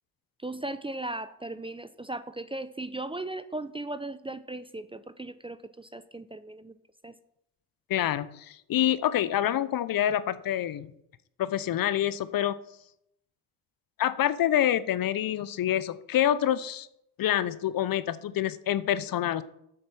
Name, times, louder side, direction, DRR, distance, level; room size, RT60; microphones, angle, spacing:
voice 1, 0.4-6.7 7.0-7.1, right 2 dB, 10° right, 13 dB, 0.6 m, -37 dB
voice 2, 7.9-10.9 11.4-12.6 14.0-16.9 17.2-19.4, left 11 dB, 50° left, 16 dB, 0.7 m, -27 dB
8.1 x 6.5 x 6.2 m, 0.77 s
hypercardioid pair, 50°, 45 cm